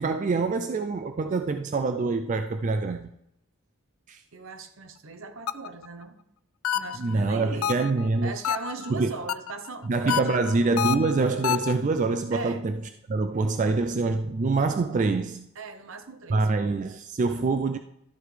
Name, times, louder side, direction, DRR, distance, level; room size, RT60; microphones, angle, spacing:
voice 1, 0.0-3.1 4.1-4.2 7.0-8.4 8.9-9.1 9.9-12.8 13.1-15.5 16.3-17.8, right 3 dB, 35° right, 0.3 m, -25 dB
voice 2, 4.3-6.2 6.7-7.8 8.2-10.5 12.3-12.6 15.6-16.5, right 3 dB, 70° right, 0.9 m, -39 dB
sound 1, 5.5-5.9 6.6-7.1 7.6-8.1 8.4-8.9 9.3-9.7 10.1-11.7, left 10 dB, 80° left, 0.4 m, -28 dB
12.5 x 7.9 x 3.3 m
head